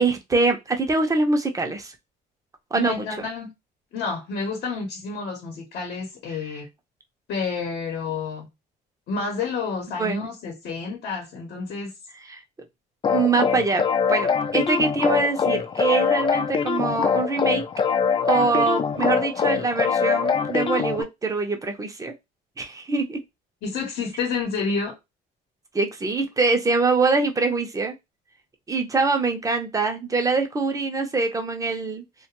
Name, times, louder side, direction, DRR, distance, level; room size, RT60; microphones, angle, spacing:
voice 1, 0.0-2.0 2.7-3.3 10.0-10.3 12.2-12.4 13.1-13.8 14.1-17.6 18.3-22.1 22.6-23.2 25.7-27.9 28.7-32.0, right 3 dB, 20° right, 0.6 m, -24 dB
voice 2, 2.7-3.5 3.9-6.7 7.3-8.5 9.1-11.9 23.6-24.9, left 4 dB, 70° left, 0.9 m, -29 dB
sound 1, 13.0-21.0, left 6 dB, 30° left, 0.4 m, -23 dB
2.3 x 2.2 x 2.9 m
cardioid pair, 110°, 17 cm